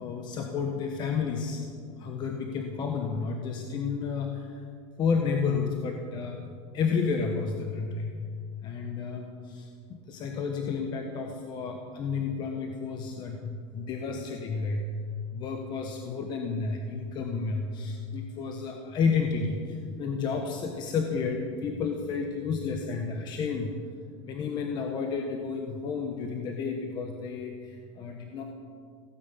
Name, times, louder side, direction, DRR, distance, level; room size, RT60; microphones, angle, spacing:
voice 1, 0.0-1.6 2.0-4.7 5.0-6.4 6.7-8.1 8.6-14.8 15.3-23.7 24.2-28.4, left 5 dB, 30° left, 3 dB, 1.2 m, -31 dB
16.5 x 9.7 x 8.4 m, 2.2 s
supercardioid pair, 160°, 15 cm